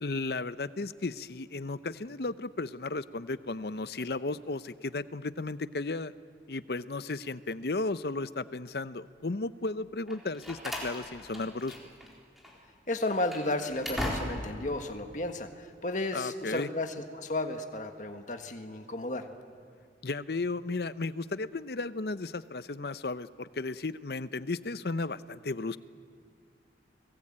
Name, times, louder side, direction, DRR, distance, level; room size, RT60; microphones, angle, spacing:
voice 1, 0.0-6.1 6.5-11.8 16.1-16.7 20.0-25.8, left 3 dB, 60° left, 15 dB, 0.7 m, -34 dB
Slam, 10.1-12.1 12.4-12.5 13.0-14.6, left 1 dB, ahead, 4.2 m, -37 dB
voice 2, 12.9-19.2, left 2 dB, 45° left, 6 dB, 1.6 m, -33 dB
29.5 x 20.5 x 8.8 m, 2.2 s
head